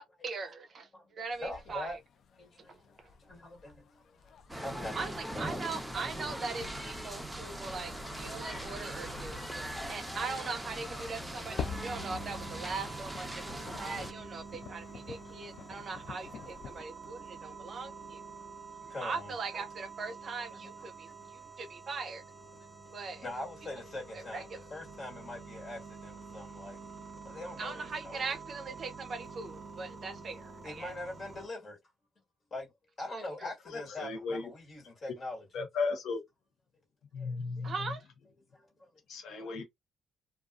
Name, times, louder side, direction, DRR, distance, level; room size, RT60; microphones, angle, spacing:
voice 1, 0.2-2.0 4.9-9.4 9.9-18.2 19.0-22.2 22.9-23.2 24.1-24.6 27.6-30.9 33.4-33.5 37.6-38.0, right 4 dB, 50° right, 0.5 m, -40 dB
sound 1, 1.3-16.8, left 7 dB, 65° left, 0.3 m, -48 dB
voice 2, 1.4-2.0 2.3-5.6 9.5-9.6 13.7-13.9 18.7-19.3 20.5-21.5 22.6-26.8 27.2-28.3 30.6-31.8 32.5-35.4 37.1-37.4 38.5-38.9 39.4-39.5, left 1 dB, 45° left, 1.4 m, -44 dB
sound 2, 4.5-14.1, right 1 dB, 5° right, 0.6 m, -41 dB
sound 3, 11.6-31.5, right 4 dB, 25° right, 1.1 m, -48 dB
voice 3, 33.7-34.5 35.5-36.2 37.1-38.0 39.1-39.6, left 4 dB, 80° left, 0.7 m, -35 dB
2.4 x 2.3 x 2.3 m
cardioid pair, 90°, 0 cm